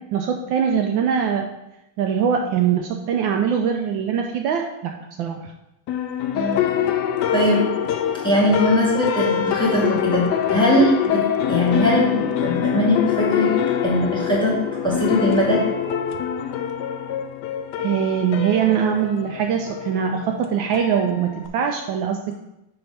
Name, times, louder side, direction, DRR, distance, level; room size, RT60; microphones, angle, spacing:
voice 1, 0.1-1.5 2.0-4.9 5.2-5.5 17.8-22.3, right 7 dB, 75° right, 3 dB, 1.2 m, -22 dB
sound 1, 5.9-21.5, left 9 dB, 75° left, 1.0 m, -24 dB
voice 2, 6.3-6.7 7.3-7.6 8.2-11.2 11.5-14.6 14.8-15.6, equal, ahead, -4 dB, 1.8 m, -20 dB
9.4 x 3.3 x 5.6 m, 0.90 s
omnidirectional pair, 2.3 m